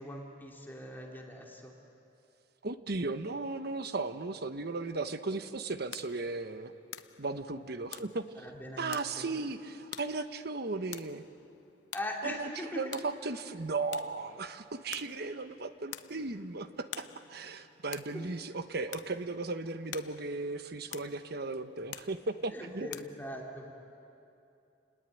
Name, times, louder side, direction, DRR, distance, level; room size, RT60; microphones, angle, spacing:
voice 1, 0.0-1.7 8.4-9.3 11.9-12.8 18.1-18.3 22.5-23.7, left 1 dB, 10° left, 0 dB, 2.8 m, -41 dB
voice 2, 2.6-6.7 7.2-8.5 8.8-11.2 12.2-22.9, right 3 dB, 60° right, 10 dB, 1.1 m, -36 dB
sound 1, 5.4-23.0, left 10 dB, 75° left, 0.9 m, -50 dB
29.0 x 20.0 x 9.3 m, 2.7 s
head